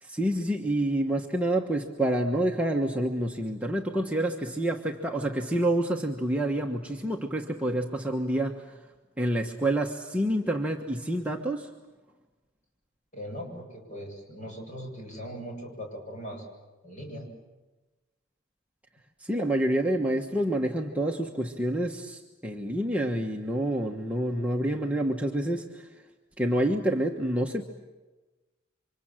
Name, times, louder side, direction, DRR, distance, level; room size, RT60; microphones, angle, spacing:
voice 1, 0.0-8.7 9.2-11.7 19.2-25.9 26.4-27.6, right 1 dB, 5° right, 0 dB, 1.3 m, -28 dB
voice 2, 13.1-16.5 16.8-17.3, equal, 40° left, 1 dB, 8.0 m, -39 dB
29.5 x 25.5 x 7.6 m, 1.2 s
head